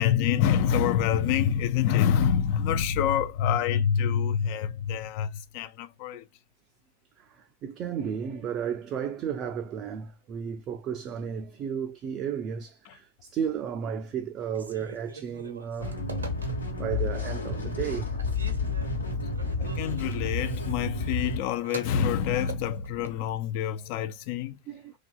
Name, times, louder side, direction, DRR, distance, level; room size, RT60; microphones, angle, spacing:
voice 1, 0.0-6.2 19.6-24.6, left 8 dB, 45° left, 0.3 m, -26 dB
voice 2, 7.2-16.0 16.8-18.1 24.7-24.9, right 8 dB, 35° right, 0.3 m, -33 dB
Telephone, 14.5-16.9 17.4-17.9 18.2-23.2, right 4 dB, 75° right, 0.6 m, -44 dB
sound 1, 15.8-21.4, left 3 dB, 80° left, 1.0 m, -30 dB
2.9 x 2.5 x 2.2 m
figure-of-eight pair, 90°, 0 cm